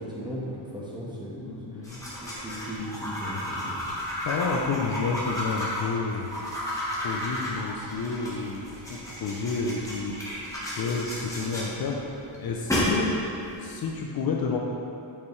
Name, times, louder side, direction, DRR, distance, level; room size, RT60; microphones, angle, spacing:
voice 1, 0.0-1.8 2.1-3.8, equal, 10° right, -6 dB, 1.2 m, -37 dB
voice 2, 1.4-2.0 4.3-6.3 6.9-10.2 10.8-13.2 13.6-14.6, left 4 dB, 50° left, 0 dB, 0.6 m, -30 dB
sound 1, 1.8-13.9, left 1 dB, 5° left, 1.2 m, -33 dB
6.7 x 5.8 x 3.2 m, 2.7 s
wide cardioid pair, 140°, 46 cm